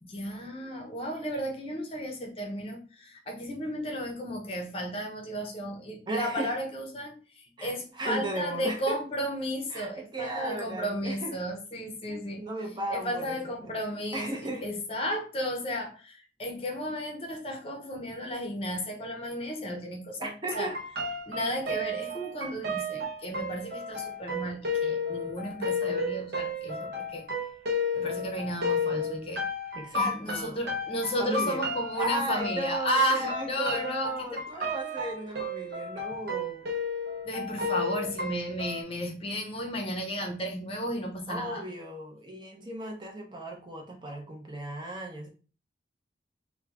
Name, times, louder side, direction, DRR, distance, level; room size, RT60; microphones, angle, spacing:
voice 1, 0.0-12.4 12.9-20.7 21.3-27.2 27.9-29.4 29.9-34.7 37.2-41.6, equal, 30° left, 2 dB, 0.7 m, -33 dB
voice 2, 6.1-6.5 7.6-9.0 9.7-11.3 12.1-13.8 14.1-14.6 20.2-20.8 29.7-30.6 31.2-31.7 31.9-36.7 41.3-45.3, right 1 dB, 25° right, 1 dB, 0.7 m, -35 dB
sound 1, 20.5-38.8, left 2 dB, 60° right, 0.7 m, -33 dB
3.0 x 2.3 x 3.4 m, 0.36 s
head